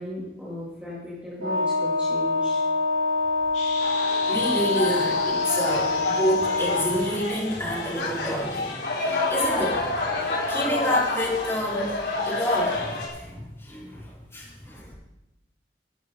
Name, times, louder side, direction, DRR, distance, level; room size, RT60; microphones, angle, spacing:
voice 1, 0.0-2.6 14.6-14.9, equal, 5° right, -7 dB, 3.0 m, -36 dB
Wind instrument woodwind instrument, 1.4-7.1, left 3 dB, 75° right, 2.7 m, -25 dB
sound 1, 3.5-9.4, left 4 dB, 40° left, 3.5 m, -39 dB
sound 2, 3.8-13.1, left 2 dB, 75° left, 4.6 m, -29 dB
voice 2, 4.3-10.0 10.5-14.9, equal, 15° left, -6 dB, 4.8 m, -28 dB
15.5 x 14.0 x 4.0 m, 0.95 s
head